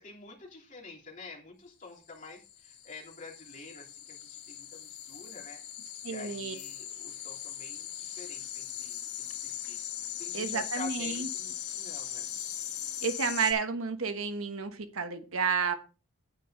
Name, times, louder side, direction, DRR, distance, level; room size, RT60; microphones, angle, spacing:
voice 1, 0.0-5.6 6.0-9.8 10.2-12.3, left 3 dB, 35° left, -1 dB, 3.2 m, -48 dB
sound 1, 2.2-13.5, left 10 dB, 90° left, 3.0 m, -39 dB
voice 2, 6.0-6.5 10.3-11.3 13.0-15.7, right 5 dB, 70° right, 8 dB, 1.2 m, -31 dB
9.2 x 9.1 x 3.9 m, 0.34 s
head